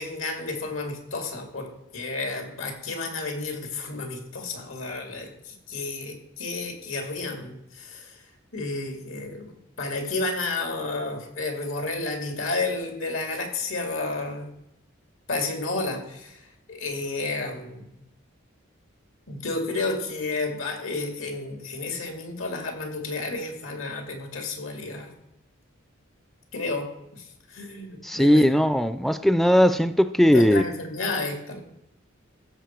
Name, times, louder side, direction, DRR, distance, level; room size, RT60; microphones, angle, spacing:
voice 1, 0.0-8.2 8.5-9.5 9.8-14.5 15.3-16.4 16.7-17.9 19.3-25.1 26.5-28.6 30.3-31.6, left 3 dB, 90° left, 2.4 m, -31 dB
voice 2, 28.0-30.6, equal, ahead, 0.3 m, -19 dB
15.0 x 7.0 x 4.5 m
head